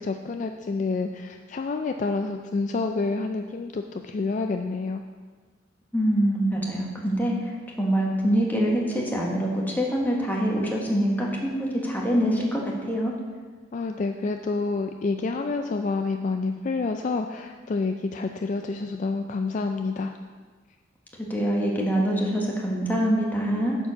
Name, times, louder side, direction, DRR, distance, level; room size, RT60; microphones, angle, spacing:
voice 1, 0.0-5.0 13.7-20.1, left 3 dB, 40° left, 5 dB, 0.3 m, -28 dB
voice 2, 5.9-7.5 7.8-13.1 21.3-23.8, equal, 10° left, -3 dB, 1.3 m, -24 dB
9.1 x 4.6 x 6.2 m, 1.5 s
head